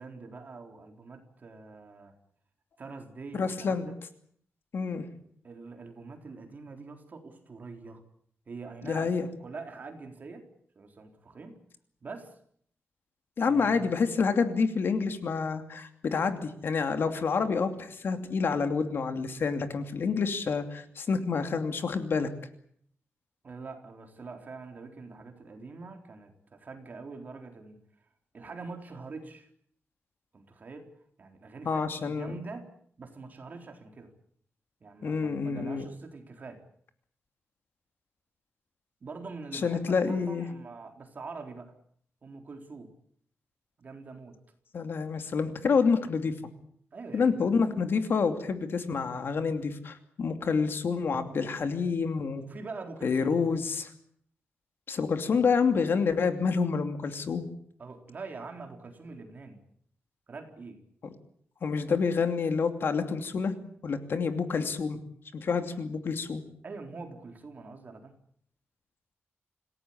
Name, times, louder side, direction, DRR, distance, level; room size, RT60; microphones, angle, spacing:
voice 1, 0.0-2.2 2.8-3.9 5.4-8.0 8.5-10.5 10.8-11.6 12.0-12.4 13.4-13.9 23.4-27.8 28.3-29.5 30.3-30.9 31.2-32.7 33.0-34.1 34.8-36.6 39.0-41.7 42.2-42.9 43.8-44.4 46.9-47.5 52.4-53.4 57.8-59.6 60.3-60.8 66.6-68.1, right 4 dB, 40° right, 4 dB, 4.0 m, -44 dB
voice 2, 3.3-3.9 4.7-5.0 8.8-9.3 13.4-22.3 31.7-32.3 35.0-35.8 39.5-40.4 44.7-46.3 47.1-52.4 53.0-53.9 54.9-57.5 61.6-63.5 63.8-65.0 65.3-66.4, left 5 dB, 55° left, 7 dB, 2.7 m, -28 dB
27.5 x 17.0 x 8.8 m, 0.64 s
wide cardioid pair, 175°, 4 cm